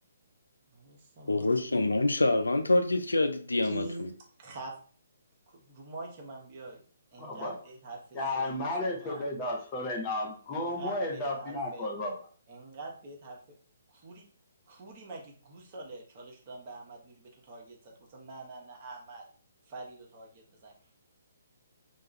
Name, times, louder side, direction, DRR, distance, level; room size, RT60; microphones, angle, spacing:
voice 1, 0.7-1.6 3.6-4.1 4.4-4.8 5.5-6.8 7.1-9.3 10.5-11.8 12.5-13.6 13.9-14.3 14.7-19.2 19.7-20.7, right 3 dB, 35° right, -1 dB, 0.8 m, -45 dB
voice 2, 1.3-4.1, left 2 dB, 75° left, 7 dB, 0.4 m, -26 dB
voice 3, 7.2-7.6 8.1-12.1, left 2 dB, 20° left, -1 dB, 0.7 m, -33 dB
2.4 x 2.3 x 3.1 m, 0.43 s
figure-of-eight pair, 130°, 0 cm